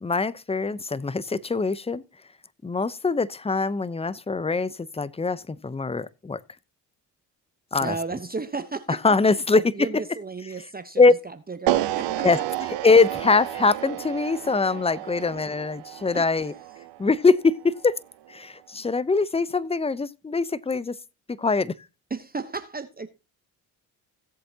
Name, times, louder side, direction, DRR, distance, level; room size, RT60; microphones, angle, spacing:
voice 1, 0.0-2.0 2.6-6.4 7.7-8.0 8.9-9.6 11.0-11.1 12.2-12.4 12.8-16.5 17.0-18.0 18.3-21.0 21.3-21.7, left 4 dB, 15° left, 0.7 m, -22 dB
voice 2, 7.8-9.0 9.3-12.3 16.1-16.3 22.1-23.1, right 4 dB, 20° right, 1.0 m, -34 dB
sound 1, 11.7-17.8, right 14 dB, 75° right, 0.9 m, -31 dB
17.0 x 7.7 x 2.8 m
supercardioid pair, 55°, 43 cm